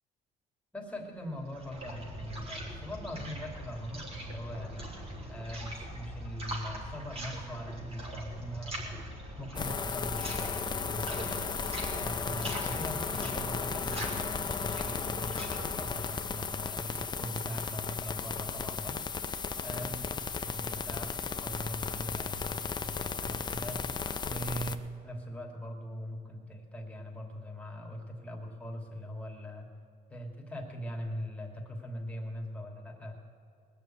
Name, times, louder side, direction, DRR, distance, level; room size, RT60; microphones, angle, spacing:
voice 1, 0.7-4.9 5.3-11.6 11.9-19.0 19.6-23.8 24.2-29.7 30.1-33.2, equal, 5° left, 0 dB, 2.9 m, -41 dB
Pau na Água Serralves, 1.1-17.2, right 1 dB, 35° right, 4.2 m, -42 dB
sound 1, 9.6-24.8, left 5 dB, 25° left, 0.7 m, -35 dB
20.0 x 7.1 x 9.1 m, 2.4 s
cardioid pair, 110°, 17 cm